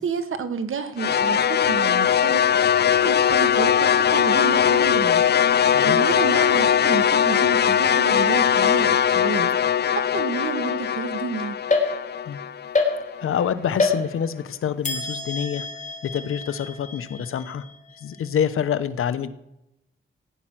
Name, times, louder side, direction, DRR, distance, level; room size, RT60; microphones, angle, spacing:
voice 1, 0.0-2.8 3.0-11.6, right 5 dB, 75° right, 10 dB, 1.6 m, -30 dB
sound 1, 1.0-13.2, left 8 dB, 50° left, 0.5 m, -20 dB
sound 2, 11.7-12.3 12.7-13.4 13.8-14.4 14.8-18.3, left 3 dB, 35° left, 3.3 m, -28 dB
voice 2, 13.2-15.6 16.0-17.6 18.0-19.3, left 8 dB, 85° left, 12 dB, 1.0 m, -26 dB
15.5 x 10.0 x 6.0 m, 0.88 s
cardioid pair, 90°, 21 cm